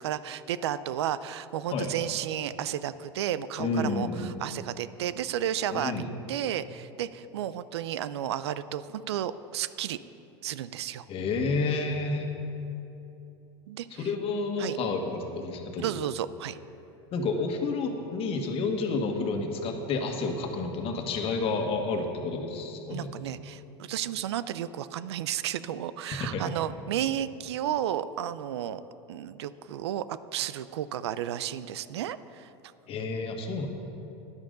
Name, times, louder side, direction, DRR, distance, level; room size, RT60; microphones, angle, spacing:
voice 1, 0.0-5.9 6.3-10.0 10.4-11.1 13.7-14.1 14.6-14.8 15.8-16.6 22.9-28.8 29.1-32.5, right 11 dB, 85° right, 15 dB, 0.4 m, -32 dB
voice 2, 3.6-4.3 5.7-6.0 11.1-12.3 14.0-15.8 17.1-23.1 26.2-26.5 32.9-33.7, left 3 dB, 45° left, 3 dB, 1.5 m, -30 dB
12.5 x 10.5 x 3.9 m, 2.9 s
supercardioid pair, 105°, 14 cm